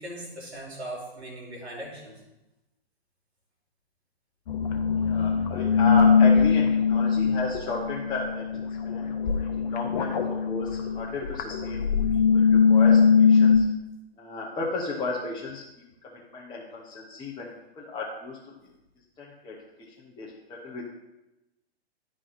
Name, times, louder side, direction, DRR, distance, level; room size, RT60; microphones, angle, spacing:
voice 1, 0.0-2.2, right 1 dB, 85° right, -1 dB, 2.9 m, -39 dB
sound 1, 4.5-13.6, left 6 dB, 45° left, 1.0 m, -21 dB
voice 2, 5.0-8.5 8.8-9.1 9.4-11.8 12.1-13.6 14.2-15.6 16.0-17.5 17.8-18.4 19.2-19.5 20.0-20.9, left 3 dB, 15° left, -5 dB, 1.0 m, -34 dB
11.0 x 4.9 x 4.1 m, 0.95 s
hypercardioid pair, 130°, 32 cm